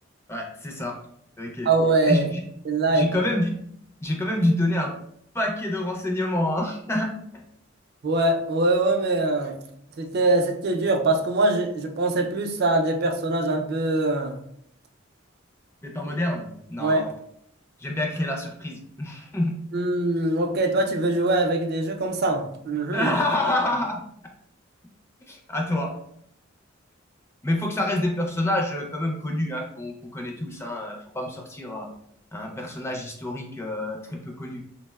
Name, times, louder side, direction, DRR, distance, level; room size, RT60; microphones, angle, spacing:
voice 1, 0.3-1.0 1.4-1.7 2.0-2.4 2.9-3.6 4.0-4.9 5.3-7.1 15.8-17.1 17.8-19.6 22.9-24.0 25.3-25.9 27.4-31.9 32.3-34.6, left 1 dB, 15° left, 0 dB, 0.4 m, -27 dB
voice 2, 1.7-2.3 2.7-3.1 8.0-9.6 10.0-14.3 16.8-17.1 19.7-23.1, right 2 dB, 55° right, 4 dB, 0.4 m, -23 dB
3.4 x 2.1 x 2.2 m, 0.70 s
head